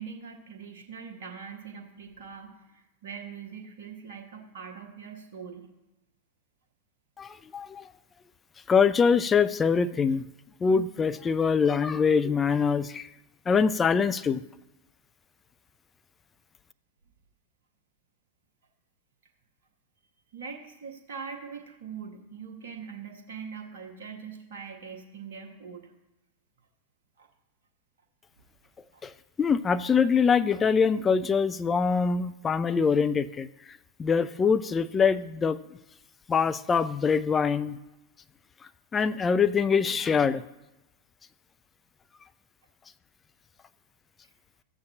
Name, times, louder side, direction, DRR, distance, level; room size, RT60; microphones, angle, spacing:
voice 1, 0.0-5.7 20.3-25.9 27.2-27.3 28.9-29.0, right 6 dB, 55° right, 3 dB, 1.0 m, -42 dB
voice 2, 7.2-7.8 8.7-10.2 10.6-13.1 13.5-14.4 29.0-29.1 29.4-33.5 34.0-35.6 36.3-37.8 38.9-40.4, left 6 dB, 20° left, 12 dB, 0.4 m, -24 dB
14.0 x 7.9 x 2.8 m, 0.99 s
figure-of-eight pair, 90°, 0 cm